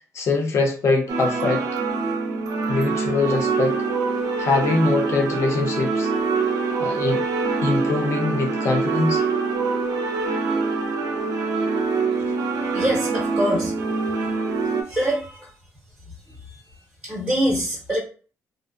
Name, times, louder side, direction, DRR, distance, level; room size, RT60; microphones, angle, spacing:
voice 1, 0.1-1.7 2.7-3.8 4.4-6.1 6.8-7.2 7.6-9.2, left 3 dB, 50° left, 2 dB, 0.6 m, -23 dB
sound 1, 1.1-14.8, right 4 dB, 90° right, 0.4 m, -24 dB
voice 2, 12.7-13.7 14.9-15.5 17.0-18.0, equal, 10° right, -4 dB, 0.6 m, -24 dB
2.5 x 2.0 x 2.4 m, 0.39 s
cardioid pair, 150°, 6 cm